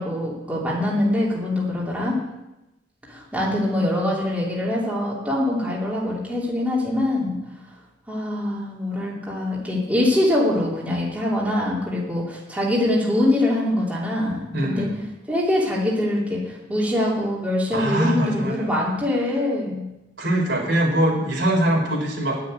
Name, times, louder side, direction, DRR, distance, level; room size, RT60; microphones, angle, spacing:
voice 1, 0.0-2.1 3.1-7.4 8.1-14.9 15.3-19.9, left 1 dB, 10° right, -6 dB, 3.1 m, -23 dB
voice 2, 14.5-14.9 17.7-18.7 20.2-22.4, right 1 dB, 70° right, -1 dB, 4.2 m, -22 dB
11.0 x 6.6 x 9.4 m, 0.97 s
head